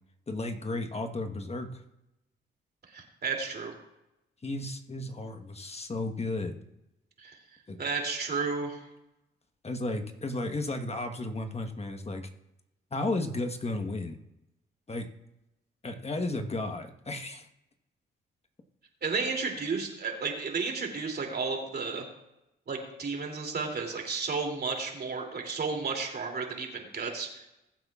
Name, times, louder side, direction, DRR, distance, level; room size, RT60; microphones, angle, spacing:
voice 1, 0.3-1.8 4.4-6.6 7.7-7.8 9.6-12.3 12.9-14.2 14.9-15.1 15.8-17.5, left 2 dB, 30° left, 6 dB, 1.3 m, -33 dB
voice 2, 2.9-3.7 7.2-7.4 7.8-8.8 19.0-22.1 22.7-27.5, right 4 dB, 50° right, 2 dB, 2.9 m, -32 dB
21.0 x 7.9 x 2.4 m, 0.89 s
supercardioid pair, 60°, 21 cm